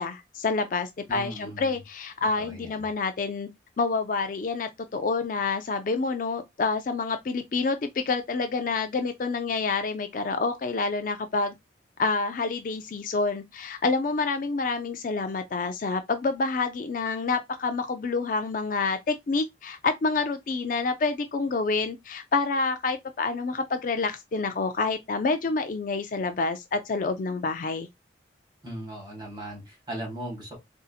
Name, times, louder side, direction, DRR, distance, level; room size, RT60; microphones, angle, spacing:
voice 1, 0.0-3.5 3.8-11.5 12.0-27.9, left 4 dB, 45° left, 0.4 m, -28 dB
voice 2, 1.1-1.8 2.4-2.8 28.6-30.6, right 1 dB, 20° right, 2.0 m, -38 dB
3.9 x 2.7 x 2.4 m
head